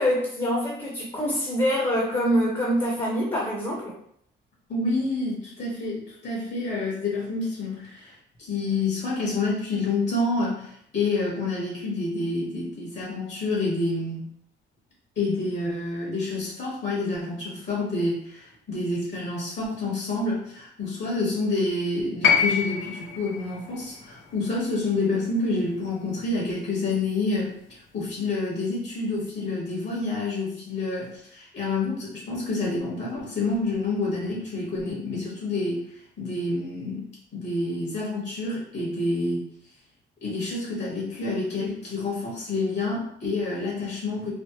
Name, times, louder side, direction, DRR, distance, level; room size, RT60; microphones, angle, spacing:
voice 1, 0.0-3.9, equal, 25° left, -3 dB, 0.8 m, -25 dB
voice 2, 4.7-14.2 15.2-27.5 27.9-35.8 36.2-37.0 37.3-39.4 40.2-44.3, left 3 dB, 60° left, -4 dB, 1.4 m, -28 dB
sound 1, 22.2-26.4 27.6-27.7, left 6 dB, 80° left, 0.6 m, -27 dB
3.3 x 2.0 x 2.9 m, 0.69 s
cardioid pair, 90°, 20 cm